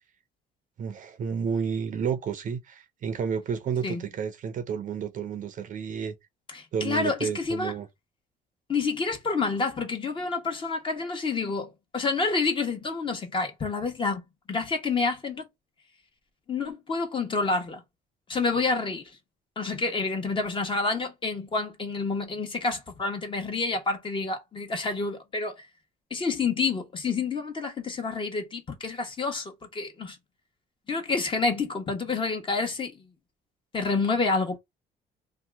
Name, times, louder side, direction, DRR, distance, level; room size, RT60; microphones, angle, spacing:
voice 1, 0.8-6.2 6.7-7.9, right 7 dB, 50° right, 0.6 m, -31 dB
voice 2, 6.5-7.7 8.7-14.2 14.5-15.5 16.5-17.8 18.3-19.1 19.6-25.7 26.1-30.2 30.9-32.9 33.7-34.6, left 4 dB, 30° left, 1.1 m, -28 dB
2.8 x 2.3 x 3.4 m
cardioid pair, 110°, 17 cm